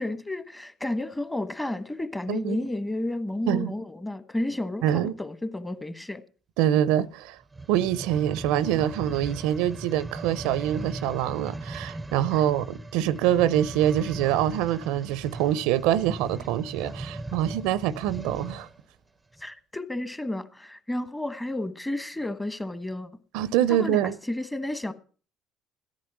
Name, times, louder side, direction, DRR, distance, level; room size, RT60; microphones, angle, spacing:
voice 1, 0.0-6.2 12.3-12.4 16.8-16.9 17.3-17.4 19.4-23.1 23.7-24.9, left 1 dB, 10° left, 1.4 m, -32 dB
voice 2, 4.8-5.2 6.6-7.4 7.7-18.7 23.3-24.2, right 11 dB, 80° right, 0.6 m, -25 dB
sound 1, 7.4-18.8 19.4-19.5, right 2 dB, 15° right, 0.6 m, -38 dB
14.0 x 10.5 x 6.0 m
supercardioid pair, 75°, 0 cm